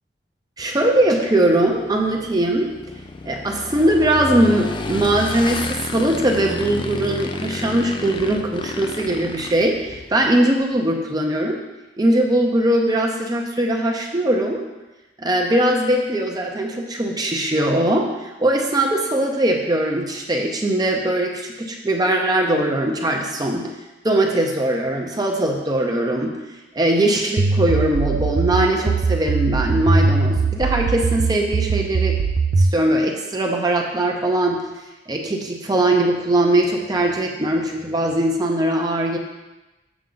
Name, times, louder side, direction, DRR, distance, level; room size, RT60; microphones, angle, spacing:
Motorcycle / Engine, 0.6-10.3, left 3 dB, 25° left, 0.4 m, -31 dB
voice 1, 0.6-2.7 3.3-11.6 12.0-14.6 15.2-23.7 24.0-26.4 26.7-32.1 32.6-34.7 35.1-39.2, right 1 dB, 25° right, 1 dB, 0.6 m, -20 dB
sound 1, 27.4-32.7, right 4 dB, 75° right, 0.4 m, -20 dB
7.0 x 6.3 x 3.9 m, 1.1 s
head